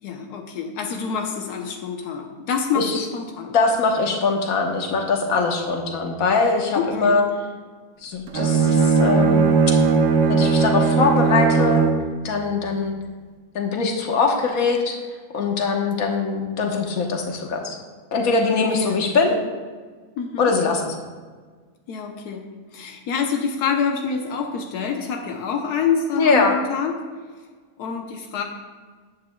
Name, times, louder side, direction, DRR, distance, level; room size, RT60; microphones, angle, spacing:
voice 1, 0.0-3.5 6.7-7.2 18.6-19.0 19.3-19.5 20.2-20.5 21.9-26.9 27.8-28.4, left 6 dB, 90° left, 2 dB, 1.4 m, -27 dB
voice 2, 3.5-7.2 8.0-9.5 10.3-11.8 12.2-12.9 13.5-15.0 15.3-17.8 18.1-19.4 20.4-21.0 26.2-26.6, left 4 dB, 65° left, 2 dB, 1.5 m, -22 dB
Bowed string instrument, 8.3-12.1, right 5 dB, 60° right, 1.1 m, -18 dB
14.0 x 9.3 x 2.3 m, 1.5 s
omnidirectional pair, 1.6 m